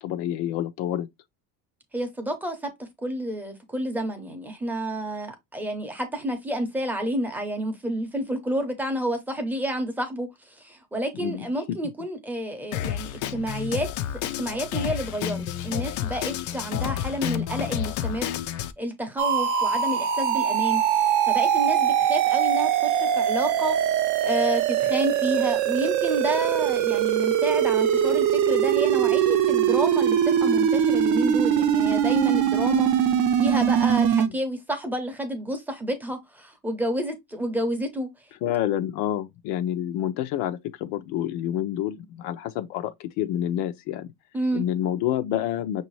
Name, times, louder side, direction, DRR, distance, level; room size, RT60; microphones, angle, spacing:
voice 1, 0.0-1.1 11.1-11.8 34.3-34.4 38.4-44.1 44.5-45.8, left 11 dB, 75° left, 0.8 m, -28 dB
voice 2, 1.9-13.9 14.1-18.3 18.8-20.8 21.3-23.8 24.2-33.1 33.4-38.1 44.3-44.7, equal, 5° right, 0.7 m, -30 dB
Drum kit, 12.7-18.7, left 10 dB, 45° left, 0.5 m, -30 dB
sound 1, 19.2-34.3, right 9 dB, 45° right, 0.6 m, -22 dB
6.2 x 2.8 x 3.0 m
cardioid pair, 175°, 42 cm